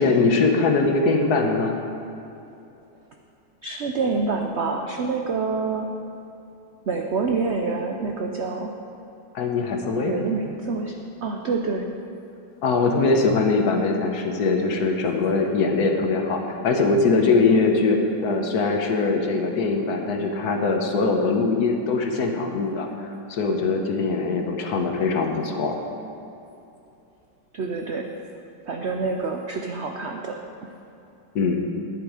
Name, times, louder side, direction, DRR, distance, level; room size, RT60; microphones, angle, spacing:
voice 1, 0.0-1.7 9.3-10.1 12.6-25.8 31.3-31.6, left 3 dB, 60° left, 3 dB, 1.4 m, -22 dB
voice 2, 3.6-5.9 6.9-8.7 10.0-10.9 11.2-11.9 27.5-28.1 28.7-30.7, right 4 dB, 90° right, 3 dB, 0.5 m, -27 dB
11.0 x 9.1 x 4.9 m, 2.8 s
omnidirectional pair, 2.0 m